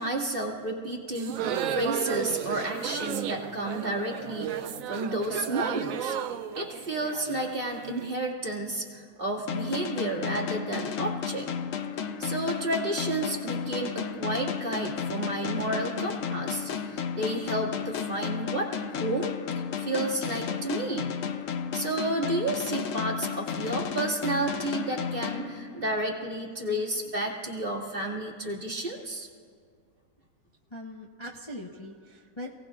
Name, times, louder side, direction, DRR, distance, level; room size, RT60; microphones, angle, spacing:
voice 1, 0.0-6.1 6.6-11.5 12.2-18.7 19.0-19.3 19.8-21.1 21.7-29.3, right 2 dB, 35° right, -3 dB, 2.3 m, -31 dB
sound 1, 1.1-8.1, right 9 dB, 65° right, 1.0 m, -33 dB
sound 2, 9.5-26.1, left 7 dB, 65° left, 1.0 m, -33 dB
voice 2, 30.7-32.5, left 1 dB, 20° left, -3 dB, 1.0 m, -41 dB
27.5 x 18.0 x 2.4 m, 2.1 s
omnidirectional pair, 1.7 m